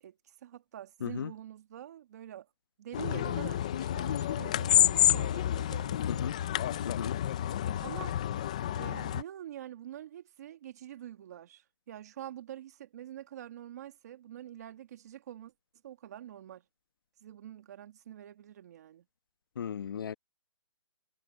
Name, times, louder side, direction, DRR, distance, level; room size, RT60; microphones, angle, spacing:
voice 1, 0.0-2.5 2.8-6.2 7.8-8.2 8.8-15.5 15.8-16.6 17.2-19.1, right 11 dB, 30° right, 1.8 m, -46 dB
voice 2, 1.0-1.3 6.1-6.3 6.8-7.2 19.6-20.1, left 7 dB, 45° left, 1.1 m, -35 dB
sound 1, 2.9-9.2, left 11 dB, 15° left, 0.4 m, -29 dB
hypercardioid pair, 170°, 16 cm